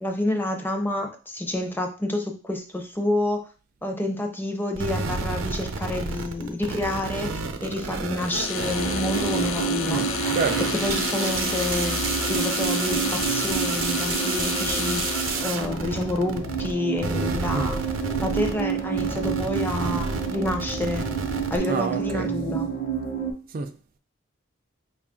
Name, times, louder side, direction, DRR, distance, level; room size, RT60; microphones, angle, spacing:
voice 1, 0.0-3.5 3.8-10.0 10.8-15.0 15.4-17.8 18.2-21.0 21.5-22.7, left 1 dB, 10° left, 0.5 m, -28 dB
sound 1, 4.8-16.7 17.0-21.6, right 4 dB, 85° right, 0.6 m, -30 dB
sound 2, 8.2-15.6, left 6 dB, 85° left, 0.4 m, -31 dB
sound 3, 8.7-23.3, right 6 dB, 40° left, 1.0 m, -30 dB
voice 2, 9.9-10.7 17.5-17.8 21.7-22.3 23.5-23.7, right 4 dB, 45° right, 0.3 m, -28 dB
4.8 x 2.4 x 3.6 m
head